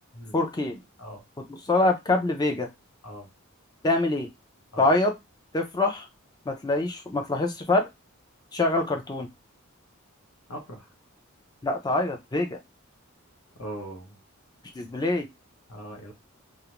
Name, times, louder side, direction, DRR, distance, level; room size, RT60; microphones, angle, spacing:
voice 1, 0.3-0.8 1.5-2.7 3.8-4.3 4.8-5.1 5.5-6.1 6.5-7.9 8.5-9.3 11.6-12.6 14.7-15.3, left 2 dB, 20° left, 3 dB, 0.5 m, -25 dB
voice 2, 10.5-10.9 13.6-14.2 15.7-16.1, equal, 80° left, 2 dB, 0.9 m, -40 dB
2.4 x 2.1 x 2.9 m, 0.21 s
head